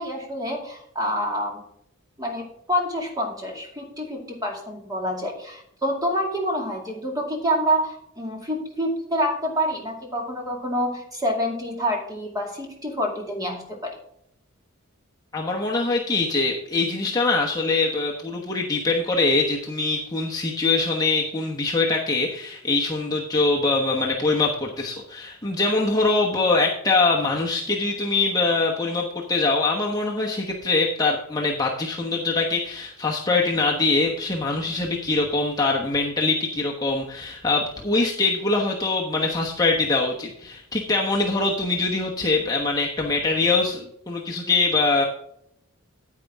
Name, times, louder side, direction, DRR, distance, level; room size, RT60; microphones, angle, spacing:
voice 1, 0.0-1.6 2.2-14.0, equal, 15° right, 1 dB, 2.2 m, -27 dB
voice 2, 15.3-45.0, left 3 dB, 15° left, -2 dB, 1.1 m, -23 dB
9.6 x 9.1 x 3.5 m, 0.72 s
head